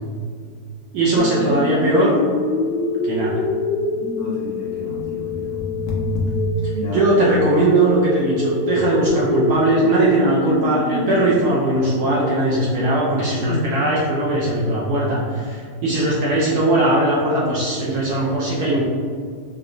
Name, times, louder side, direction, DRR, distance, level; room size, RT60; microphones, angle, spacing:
voice 1, 0.9-2.2 3.0-3.4 6.9-18.9, right 1 dB, 75° right, -5 dB, 1.0 m, -19 dB
sound 1, 1.2-11.2, left 2 dB, 85° left, 0.6 m, -24 dB
voice 2, 3.9-5.6 6.7-7.1 13.4-13.8 15.6-15.7, equal, 65° left, -6 dB, 1.1 m, -30 dB
4.8 x 2.0 x 2.5 m, 2.1 s
omnidirectional pair, 2.1 m